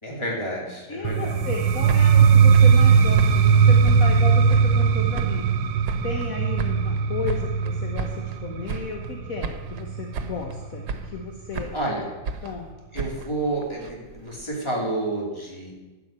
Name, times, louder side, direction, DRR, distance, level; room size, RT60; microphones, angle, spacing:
voice 1, 0.0-1.3 11.7-12.0 12.9-15.7, right 1 dB, 15° left, -3 dB, 3.0 m, -29 dB
voice 2, 0.9-5.5 6.0-11.8 12.4-12.7, left 4 dB, 50° left, 1 dB, 1.5 m, -34 dB
sound 1, 1.0-10.8, right 6 dB, 90° right, 1.5 m, -19 dB
sound 2, 1.6-4.9 5.1-6.3 6.6-8.4 8.7-9.2 9.4-9.9 10.1-10.6 10.9-11.9 12.3-14.4, right 4 dB, 65° right, 1.5 m, -35 dB
12.0 x 5.9 x 8.9 m, 1.2 s
omnidirectional pair, 2.0 m